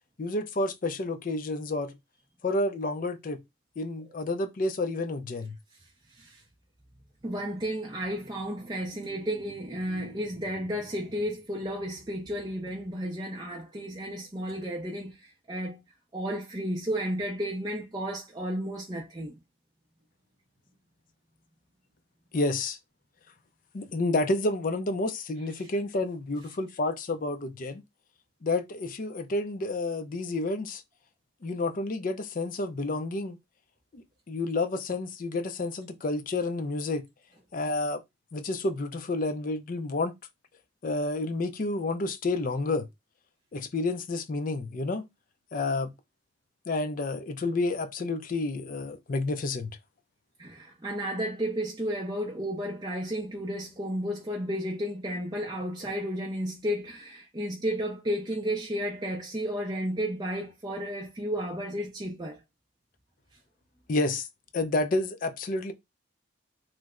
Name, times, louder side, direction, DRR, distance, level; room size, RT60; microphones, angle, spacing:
voice 1, 0.2-1.9 2.4-3.4 3.8-5.6 22.3-22.8 23.7-27.8 28.4-30.8 31.4-33.4 33.9-37.0 37.5-38.0 38.3-40.1 40.8-42.9 43.5-45.1 45.5-45.9 46.7-49.7 63.9-64.3 64.5-65.7, left 2 dB, 40° left, 0.4 m, -30 dB
voice 2, 7.2-15.8 16.1-19.4 50.4-62.4, equal, 20° right, 0.5 m, -33 dB
3.2 x 2.0 x 3.6 m
head